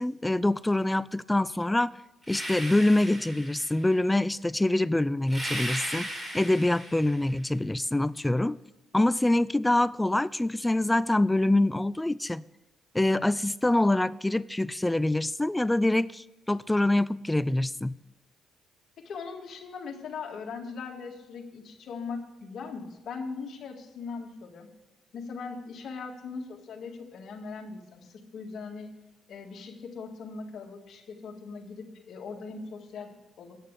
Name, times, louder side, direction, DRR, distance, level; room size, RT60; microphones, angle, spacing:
voice 1, 0.0-2.0 2.3-8.6 8.9-12.5 12.9-17.9, left 1 dB, 10° left, 0.3 m, -25 dB
sound 1, 2.2-3.9 5.3-7.3, equal, 20° right, 3.2 m, -36 dB
voice 2, 19.0-24.7 25.1-28.9 29.3-33.6, left 4 dB, 65° left, 1.8 m, -40 dB
9.5 x 6.7 x 8.1 m
cardioid pair, 90°, 0 cm